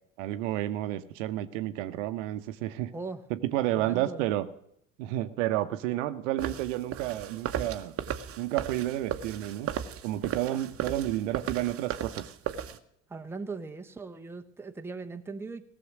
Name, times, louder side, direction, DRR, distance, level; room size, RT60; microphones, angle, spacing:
voice 1, 0.2-2.9 3.3-4.5 5.0-7.9 8.4-9.7 10.0-12.3, right 14 dB, 60° right, 11 dB, 0.9 m, -31 dB
voice 2, 3.8-4.3 10.5-10.6 13.1-15.6, right 4 dB, 5° right, 6 dB, 0.9 m, -39 dB
sound 1, 6.4-12.8, right 9 dB, 35° right, 1.0 m, -36 dB
17.5 x 7.0 x 6.2 m, 0.73 s
figure-of-eight pair, 70°, 41 cm